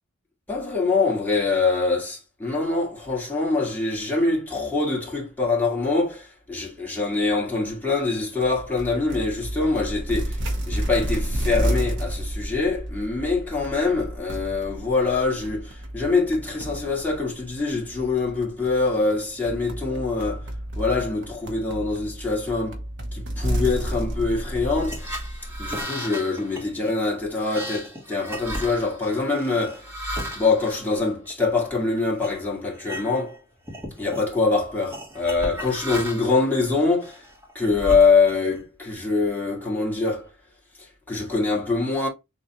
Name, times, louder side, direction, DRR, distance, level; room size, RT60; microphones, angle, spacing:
voice 1, 0.5-20.5 20.8-22.8 23.1-25.2 25.6-29.9 30.3-33.4 34.0-37.2 37.5-40.3 40.8-42.1, left 3 dB, 10° left, 1.6 m, -24 dB
sound 1, 8.4-25.8, right 1 dB, 60° right, 1.0 m, -31 dB
sound 2, 24.6-31.7 32.2-32.4 32.7-33.4 33.6-34.3 34.9-36.4 37.0-38.5, equal, 10° right, 1.2 m, -35 dB
6.4 x 2.4 x 3.0 m
head